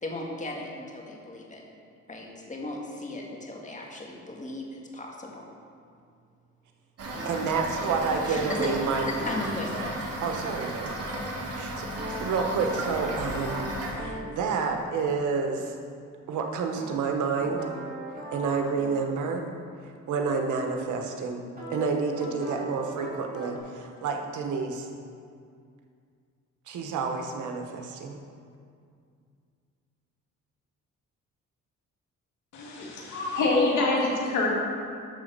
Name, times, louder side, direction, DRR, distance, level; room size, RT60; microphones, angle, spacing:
voice 1, 0.0-1.6 2.1-5.5 8.3-8.7 9.2-10.0, left 2 dB, 25° left, -1 dB, 1.8 m, -36 dB
Toilet flush / Fill (with liquid), 7.0-13.9, right 1 dB, 55° right, 1.8 m, -34 dB
sound 1, 7.1-9.5 12.0-14.3 16.8-19.1 21.6-21.8 22.2-23.6, right 1 dB, 30° right, 2.5 m, -39 dB
voice 2, 7.2-9.1 10.2-10.9 11.5-11.9 12.2-15.7 16.3-17.6 18.3-19.4 20.1-21.4 21.7-24.9 26.7-28.2, right 5 dB, 75° right, 3 dB, 1.1 m, -29 dB
voice 3, 32.5-34.5, left 2 dB, 85° left, -3 dB, 2.2 m, -25 dB
11.5 x 4.0 x 6.7 m, 2.3 s
cardioid pair, 90°, 30 cm